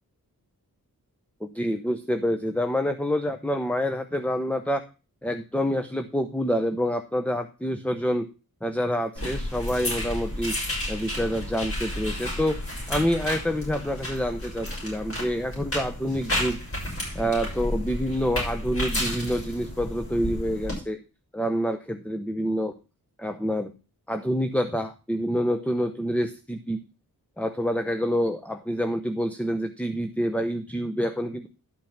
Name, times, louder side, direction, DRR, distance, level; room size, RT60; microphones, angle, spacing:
voice 1, 1.4-4.8 5.2-8.3 8.6-10.6 10.9-12.6 12.9-16.6 17.1-21.0 21.3-22.7 23.2-23.7 24.1-26.8 27.4-31.5, equal, 5° left, 8 dB, 0.8 m, -27 dB
Pill Blister Packet, 9.1-20.7, left 1 dB, 35° left, 6.4 m, -32 dB
12.0 x 5.5 x 5.7 m, 0.32 s
wide cardioid pair, 95°, 36 cm